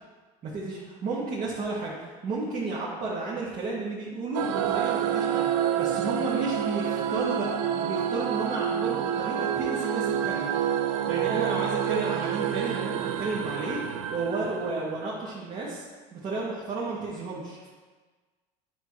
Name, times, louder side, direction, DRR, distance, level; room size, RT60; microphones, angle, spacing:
voice 1, 0.4-10.5 11.1-13.8 14.1-15.9 16.1-17.7, right 3 dB, 45° right, -7 dB, 1.9 m, -32 dB
sound 1, 4.3-15.3, right 9 dB, 80° right, 0.5 m, -28 dB
10.0 x 6.0 x 3.2 m, 1.4 s
supercardioid pair, 95°, 17 cm